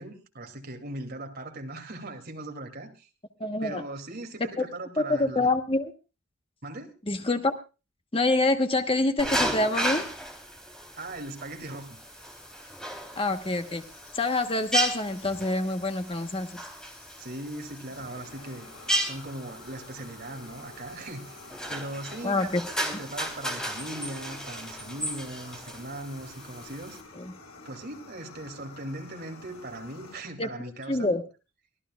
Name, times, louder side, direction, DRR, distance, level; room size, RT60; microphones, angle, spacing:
voice 1, 0.0-3.1 3.6-5.5 6.6-7.0 11.0-12.0 17.2-18.7 19.0-21.4 21.7-22.5 22.8-27.0 27.6-31.1, right 1 dB, 45° right, 4 dB, 2.7 m, -39 dB
voice 2, 3.4-3.8 5.1-5.9 7.1-7.5 8.1-10.1 13.2-13.8 14.1-16.6 22.2-22.6 27.2-27.3 30.4-30.5 30.9-31.2, left 2 dB, 25° left, 7 dB, 1.1 m, -26 dB
sound 1, 9.2-27.0, right 1 dB, 5° left, 3.5 m, -35 dB
Fire, 11.6-30.2, left 3 dB, 85° left, 6.1 m, -51 dB
24.0 x 15.5 x 2.4 m, 0.31 s
head